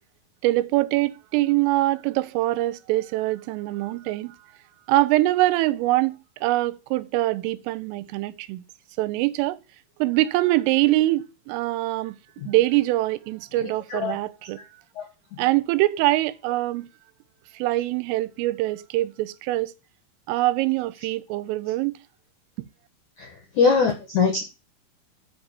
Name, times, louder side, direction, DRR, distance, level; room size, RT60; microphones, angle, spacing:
voice 1, 0.4-4.4 4.9-8.6 9.0-9.6 10.0-12.2 12.5-14.6 15.4-16.9 17.5-19.7 20.3-21.9, right 17 dB, 85° right, 3.3 m, -23 dB
voice 2, 13.6-14.2 15.0-15.1 15.3-15.4 23.2-23.3 23.5-24.4, left 5 dB, 75° left, 1.8 m, -22 dB
7.6 x 5.3 x 7.3 m
omnidirectional pair, 5.7 m